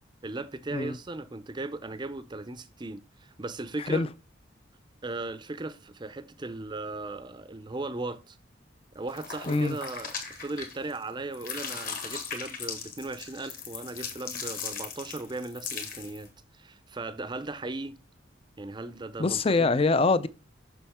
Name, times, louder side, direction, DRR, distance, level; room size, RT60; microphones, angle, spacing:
voice 1, 0.2-4.1 5.0-8.4 8.9-18.0 18.6-19.7, right 2 dB, 25° right, 0.5 m, -37 dB
sound 1, 9.1-11.0 11.3-16.3, left 6 dB, 45° left, 1.7 m, -38 dB
voice 2, 9.5-9.8 19.2-20.3, left 3 dB, 30° left, 0.4 m, -24 dB
7.1 x 6.2 x 3.5 m
head